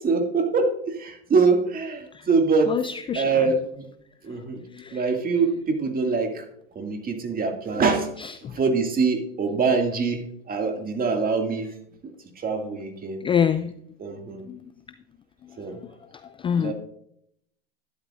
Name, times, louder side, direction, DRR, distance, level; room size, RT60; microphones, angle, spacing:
voice 1, 0.0-2.7 3.1-3.8 4.2-4.6 4.9-6.4 6.8-8.1 8.5-11.7 12.0-13.2 14.0-14.5 15.6-15.8 16.6-16.7, right 4 dB, 30° right, 4 dB, 2.2 m, -24 dB
voice 2, 2.7-3.5 4.7-5.0 8.2-8.6 13.2-13.7 14.5-14.6 16.4-16.7, left 8 dB, 15° left, 12 dB, 0.3 m, -26 dB
12.5 x 10.5 x 2.5 m, 0.71 s
hypercardioid pair, 100°, 31 cm